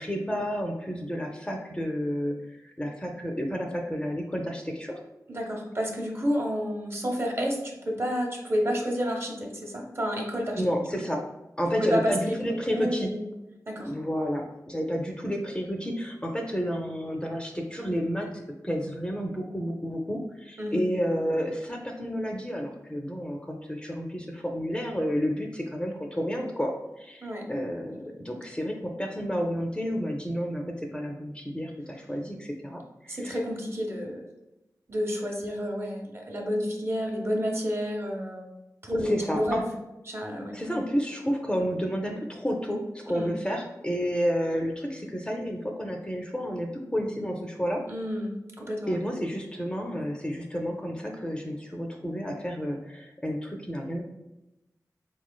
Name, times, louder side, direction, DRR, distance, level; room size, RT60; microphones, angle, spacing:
voice 1, 0.0-5.0 10.5-11.2 11.6-13.1 13.8-33.4 39.0-39.6 40.5-47.8 48.9-54.0, equal, 15° left, 1 dB, 0.5 m, -31 dB
voice 2, 5.3-10.6 11.8-12.4 12.7-13.2 13.7-13.9 20.6-20.8 27.2-27.5 33.1-34.2 34.9-38.4 38.8-39.6 40.1-40.5 43.1-43.3 47.9-48.3 48.6-49.0, equal, 40° right, 0 dB, 0.8 m, -30 dB
4.4 x 3.1 x 2.2 m, 0.94 s
wide cardioid pair, 85°, 7 cm